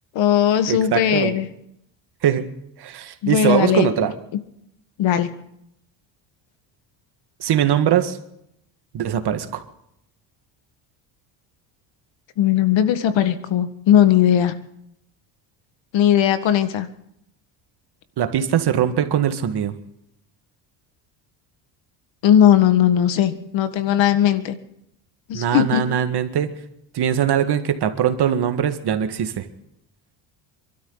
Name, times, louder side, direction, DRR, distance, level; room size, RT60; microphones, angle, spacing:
voice 1, 0.1-1.5 3.2-3.9 5.0-5.3 12.4-14.5 15.9-16.9 22.2-24.6 25.3-25.8, left 10 dB, 65° left, 10 dB, 1.8 m, -18 dB
voice 2, 0.7-1.3 2.2-2.5 2.8-4.1 7.4-8.2 8.9-9.6 18.2-19.7 25.3-26.5 26.9-29.5, right 9 dB, 50° right, 8 dB, 1.9 m, -21 dB
27.0 x 13.0 x 4.0 m, 0.75 s
cardioid pair, 100°, 49 cm